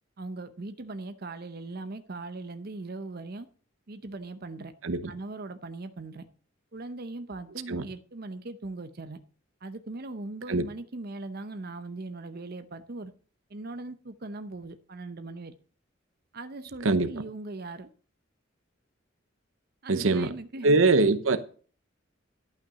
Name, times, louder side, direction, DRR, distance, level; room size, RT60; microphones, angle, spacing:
voice 1, 0.2-3.5 3.9-4.7 5.1-6.3 6.7-9.2 9.6-13.1 13.5-15.5 16.3-17.9 19.8-20.8, right 2 dB, 50° right, 0.7 m, -39 dB
voice 2, 16.8-17.2 19.9-20.3 20.6-21.4, right 3 dB, 80° right, 0.9 m, -23 dB
11.5 x 6.0 x 6.7 m
head